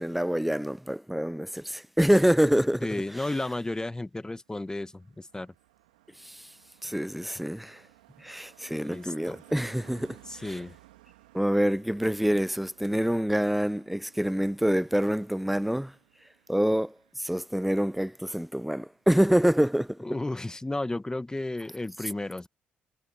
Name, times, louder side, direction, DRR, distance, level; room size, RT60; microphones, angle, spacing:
voice 1, 0.0-3.2 6.3-6.4 6.8-7.8 8.2-10.6 11.3-15.9 16.5-20.0, equal, 5° right, 0.5 m, -26 dB
voice 2, 2.8-5.5 8.7-9.4 10.3-10.7 20.0-22.5, left 2 dB, 15° left, 1.5 m, -33 dB
Car passing by, 4.1-18.7 18.9-19.2, right 17 dB, 90° right, 1.8 m, -59 dB
hypercardioid pair, 45°, 4 cm